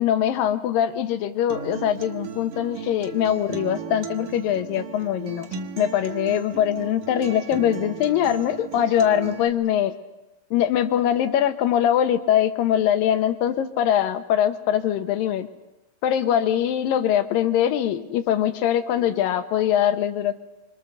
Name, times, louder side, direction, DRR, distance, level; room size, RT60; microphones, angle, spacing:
voice 1, 0.0-5.5 5.8-10.0 10.5-15.5 16.0-20.3, left 10 dB, 85° left, 9 dB, 2.9 m, -22 dB
Acoustic guitar, 1.5-9.5, right 8 dB, 70° right, 3.0 m, -36 dB
25.5 x 25.5 x 6.8 m, 0.96 s
omnidirectional pair, 3.9 m